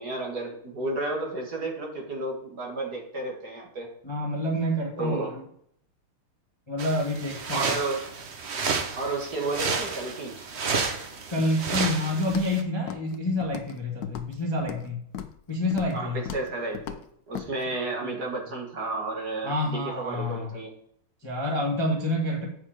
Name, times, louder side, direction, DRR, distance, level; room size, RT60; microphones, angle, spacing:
voice 1, 0.0-3.9 5.0-5.3 7.5-8.1 9.0-10.4 15.9-17.0 17.3-20.7, right 2 dB, 45° right, 0 dB, 2.1 m, -32 dB
voice 2, 4.0-5.3 6.7-7.8 11.3-15.0 15.5-16.2 18.0-18.1 19.4-20.6 21.2-22.5, left 1 dB, 15° left, -1 dB, 1.1 m, -28 dB
sound 1, 6.8-12.6, right 5 dB, 65° right, 0.6 m, -31 dB
Walk footsteps, 12.3-12.6 12.9-13.2 13.4-13.8 14.0-14.9 15.1-15.4 15.7-16.0 16.3-16.5 16.7-17.0 17.3-17.5, left 9 dB, 75° left, 0.8 m, -37 dB
8.0 x 5.7 x 4.9 m, 0.70 s
omnidirectional pair, 2.4 m